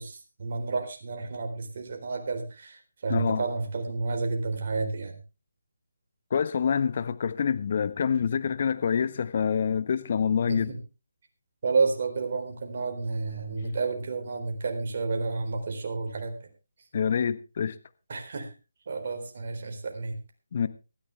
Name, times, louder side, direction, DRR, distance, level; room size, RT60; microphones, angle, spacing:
voice 1, 0.0-5.2 10.5-10.6 11.6-16.3 18.1-18.5 18.9-20.1, right 4 dB, 50° right, 3.9 m, -30 dB
voice 2, 3.1-3.4 6.3-10.7 16.9-17.7 20.5-20.7, left 7 dB, 45° left, 1.2 m, -26 dB
18.0 x 13.5 x 3.4 m
figure-of-eight pair, 155°, 0 cm